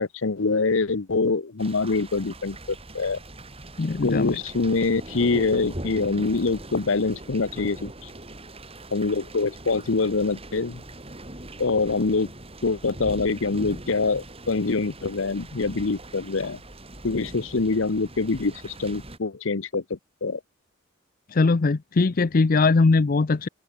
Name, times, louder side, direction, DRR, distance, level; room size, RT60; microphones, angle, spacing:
voice 1, 0.0-3.2 4.0-8.1 8.9-10.8 11.6-12.3 12.6-16.6 17.0-20.4, left 3 dB, 65° left, 0.8 m, -25 dB
sound 1, 1.6-19.2, right 1 dB, 30° right, 5.9 m, -41 dB
voice 2, 3.8-4.4 21.3-23.5, left 3 dB, 40° left, 0.5 m, -20 dB
open air
head